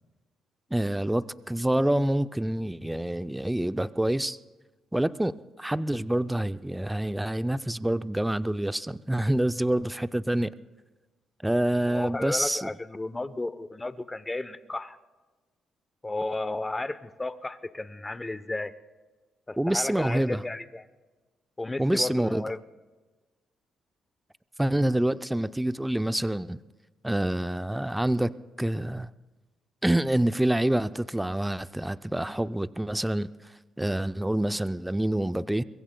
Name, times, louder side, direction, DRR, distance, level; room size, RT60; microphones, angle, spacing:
voice 1, 0.7-4.4 4.9-10.5 11.4-12.7 19.6-20.4 21.8-22.4 24.6-26.6 27.0-28.3 28.6-29.1 29.8-33.3 33.8-35.6, right 1 dB, 5° right, 0.4 m, -27 dB
voice 2, 11.9-15.0 16.0-18.7 19.5-20.8 21.6-22.6, left 2 dB, 15° left, 0.7 m, -33 dB
24.5 x 22.0 x 2.2 m
cardioid pair, 90°, 0 cm